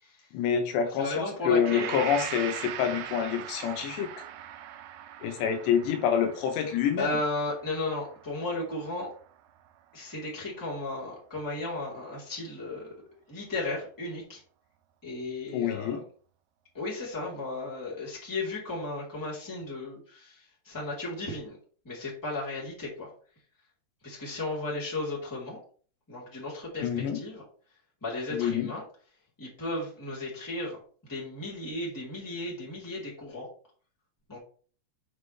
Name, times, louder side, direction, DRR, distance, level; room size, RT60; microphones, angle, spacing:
voice 1, 0.3-4.1 5.2-7.1 15.5-16.0 26.8-27.2 28.3-28.7, left 8 dB, 80° left, 5 dB, 3.2 m, -27 dB
voice 2, 0.9-2.0 7.0-9.1 9.9-12.9 13.3-14.4 15.0-16.0 16.7-21.6 21.8-23.1 24.0-25.6 26.1-26.9 27.1-27.4 28.0-28.8 29.4-33.5 34.3-34.4, left 2 dB, 5° left, -6 dB, 2.8 m, -35 dB
Gong, 1.6-9.7, right 10 dB, 85° right, 2.8 m, -41 dB
7.3 x 6.2 x 3.3 m, 0.43 s
omnidirectional pair, 4.9 m